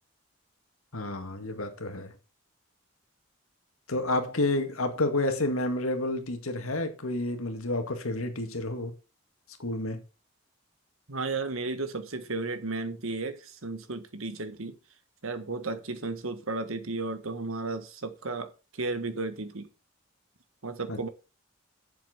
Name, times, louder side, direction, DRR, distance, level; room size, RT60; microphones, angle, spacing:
voice 1, 0.9-2.1 3.9-8.9 9.6-10.0 20.9-21.1, left 2 dB, 85° left, 1.8 m, -30 dB
voice 2, 11.1-14.8 15.2-19.7 20.6-21.1, right 3 dB, 80° right, 1.5 m, -34 dB
7.6 x 7.1 x 5.8 m
head